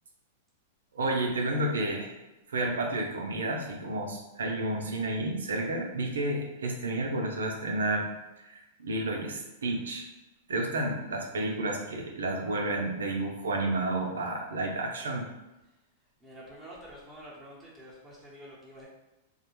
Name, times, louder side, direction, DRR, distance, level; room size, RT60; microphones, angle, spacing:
voice 1, 0.9-2.2 2.5-8.1 8.4-10.0 10.5-15.3, right 2 dB, 85° right, 1 dB, 0.5 m, -31 dB
voice 2, 16.2-18.9, equal, ahead, -9 dB, 0.9 m, -48 dB
2.4 x 2.1 x 3.0 m, 1.0 s
hypercardioid pair, 120°, 0 cm